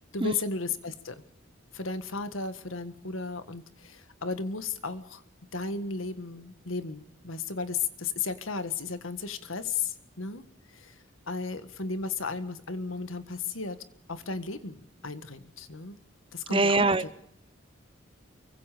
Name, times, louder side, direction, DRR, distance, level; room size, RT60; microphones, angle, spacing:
voice 1, 0.1-1.2 1.7-5.2 5.5-10.4 10.7-10.9 11.3-13.8 14.1-16.0 16.3-17.1, left 4 dB, 80° left, 11 dB, 1.7 m, -34 dB
voice 2, 16.5-17.2, right 3 dB, 25° right, 14 dB, 0.8 m, -24 dB
24.5 x 23.5 x 5.1 m, 0.74 s
head